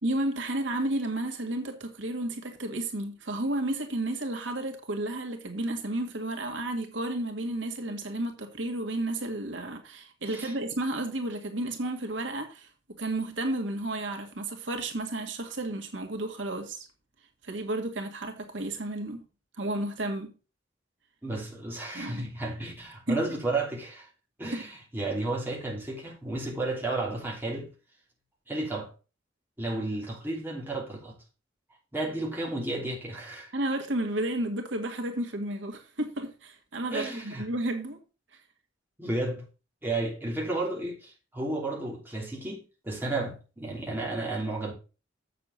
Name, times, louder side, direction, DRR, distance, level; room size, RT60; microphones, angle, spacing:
voice 1, 0.0-12.7 13.0-16.9 17.4-19.2 19.6-20.3 21.9-22.3 23.1-23.4 33.5-38.0, right 1 dB, 80° right, 1.9 m, -32 dB
voice 2, 21.2-24.1 24.4-27.7 28.5-28.9 29.6-31.2 31.9-33.5 36.9-37.5 39.0-39.4 39.8-44.7, right 2 dB, 10° right, 3.0 m, -32 dB
7.9 x 6.9 x 5.4 m
head